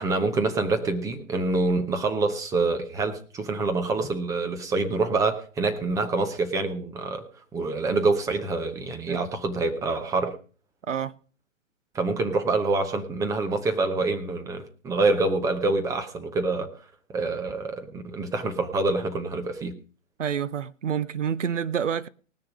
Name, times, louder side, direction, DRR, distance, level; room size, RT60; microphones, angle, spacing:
voice 1, 0.0-7.3 7.5-10.4 11.9-16.7 17.1-19.8, right 3 dB, 10° right, 0.9 m, -26 dB
voice 2, 20.2-22.1, right 8 dB, 70° right, 0.8 m, -28 dB
19.0 x 6.7 x 5.0 m
figure-of-eight pair, 130°, 39 cm